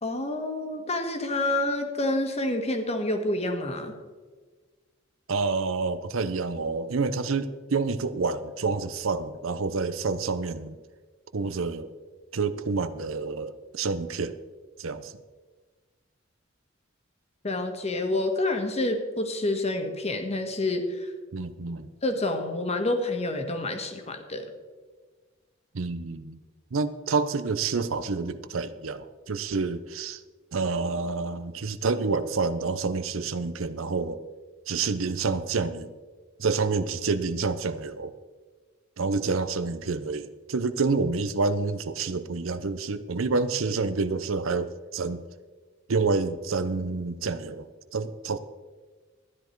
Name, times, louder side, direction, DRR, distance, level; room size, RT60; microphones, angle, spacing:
voice 1, 0.0-3.9 17.4-21.1 22.0-24.5, left 2 dB, 35° left, 6 dB, 1.5 m, -28 dB
voice 2, 5.3-10.8 11.3-11.9 12.3-14.4 14.8-15.1 21.3-21.9 25.7-26.4 26.7-30.2 30.5-34.2 34.7-35.9 36.4-38.1 39.0-45.2 45.9-48.4, right 4 dB, 75° right, 12 dB, 0.7 m, -28 dB
13.0 x 10.0 x 4.6 m, 1.4 s
head